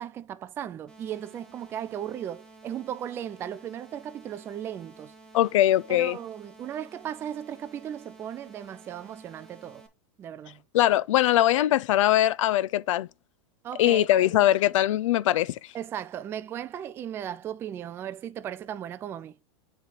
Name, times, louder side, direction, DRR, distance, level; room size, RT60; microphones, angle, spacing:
voice 1, 0.0-5.1 5.9-9.8 10.2-10.6 13.6-14.4 15.7-19.4, right 10 dB, 15° right, 0.3 m, -36 dB
sound 1, 0.9-9.9, right 3 dB, 5° left, 1.7 m, -52 dB
voice 2, 5.3-6.2 10.7-13.1 13.8-15.6, left 13 dB, 75° left, 0.5 m, -21 dB
9.0 x 3.4 x 3.8 m
supercardioid pair, 165°, 16 cm